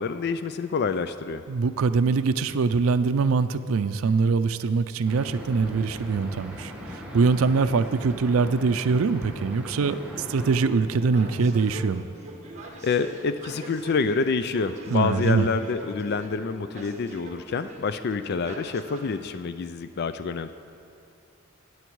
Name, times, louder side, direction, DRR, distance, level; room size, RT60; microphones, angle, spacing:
voice 1, 0.0-1.4 12.8-20.5, left 5 dB, 50° left, 11 dB, 0.4 m, -27 dB
voice 2, 1.5-10.0 10.3-12.0 14.9-15.5, right 4 dB, 85° right, 11 dB, 0.4 m, -23 dB
sound 1, 5.1-10.6, equal, 5° right, 1.6 m, -39 dB
sound 2, 9.8-19.2, right 1 dB, 35° right, 1.6 m, -42 dB
19.5 x 8.1 x 4.7 m, 2.6 s
head